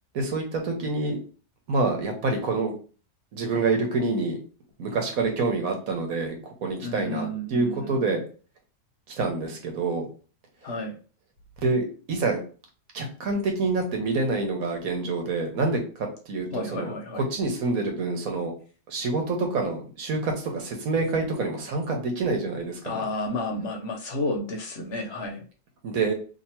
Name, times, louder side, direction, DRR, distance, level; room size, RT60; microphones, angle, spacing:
voice 1, 0.1-1.2 1.7-2.7 3.3-4.4 4.8-6.3 6.6-8.2 9.1-10.0 11.6-12.4 12.9-18.5 18.9-23.0 25.8-26.1, right 3 dB, 85° right, 3 dB, 1.4 m, -27 dB
voice 2, 6.8-7.9 10.6-10.9 16.5-17.2 22.8-25.4, left 2 dB, 55° left, 1 dB, 0.9 m, -31 dB
2.9 x 2.7 x 4.3 m, 0.38 s
omnidirectional pair, 1.5 m